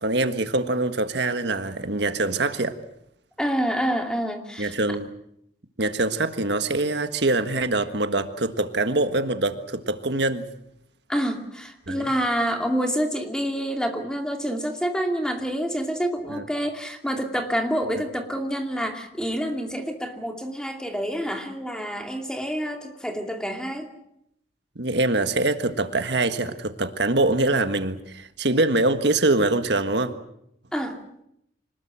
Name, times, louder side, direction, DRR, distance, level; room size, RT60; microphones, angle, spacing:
voice 1, 0.0-2.8 4.6-5.1 5.8-10.5 11.9-12.1 16.3-16.4 24.7-30.1, right 2 dB, 70° right, 9 dB, 1.6 m, -24 dB
voice 2, 3.4-4.7 11.1-23.9 30.7-31.0, equal, 5° left, 4 dB, 2.5 m, -27 dB
25.5 x 20.0 x 7.6 m, 0.75 s
head